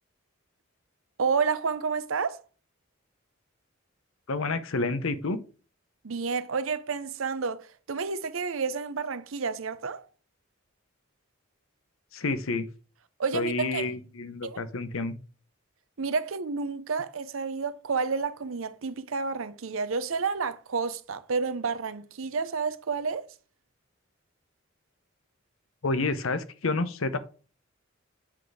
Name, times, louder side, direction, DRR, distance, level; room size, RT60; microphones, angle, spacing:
voice 1, 1.2-2.4 6.0-10.1 13.2-13.9 14.4-14.6 16.0-23.3, right 5 dB, 75° right, 0.7 m, -30 dB
voice 2, 4.3-5.4 12.1-12.6 13.3-15.2 25.8-27.2, left 3 dB, 75° left, 0.8 m, -29 dB
7.4 x 4.0 x 4.8 m
head